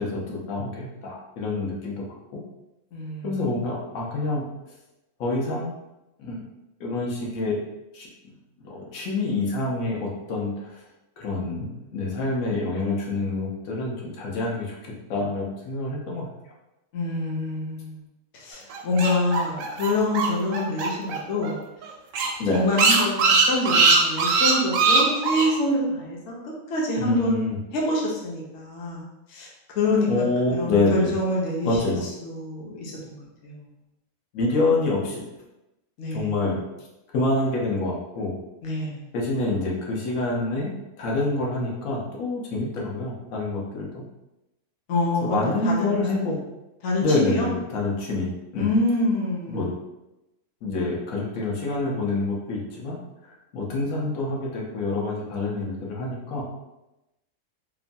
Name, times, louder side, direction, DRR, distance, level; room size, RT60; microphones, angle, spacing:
voice 1, 0.0-2.0 2.3-2.4 3.2-4.5 5.2-5.7 6.2-6.4 6.8-7.6 7.9-8.1 8.6-10.8 11.2-16.3 22.4-22.6 27.0-27.6 30.1-31.1 31.6-32.0 34.3-35.2 36.1-36.6 37.1-38.3 39.1-40.7 41.0-44.0 45.2-46.4 47.0-48.7 49.5-49.7 50.6-56.4, left 2 dB, 90° left, -3 dB, 1.1 m, -27 dB
voice 2, 2.9-3.5 16.9-18.0 18.3-21.6 22.5-26.4 26.7-27.4 27.7-29.0 29.3-29.5 29.7-31.9 32.2-33.7 36.0-36.3 38.6-39.0 44.9-46.0 46.8-47.5 48.6-49.7, left 2 dB, 65° left, -3 dB, 0.9 m, -26 dB
sound 1, 18.7-21.2 21.4-21.5 21.8-21.9 22.1-25.5, right 4 dB, 80° right, 0.9 m, -20 dB
3.0 x 2.1 x 2.5 m, 0.95 s
omnidirectional pair, 1.4 m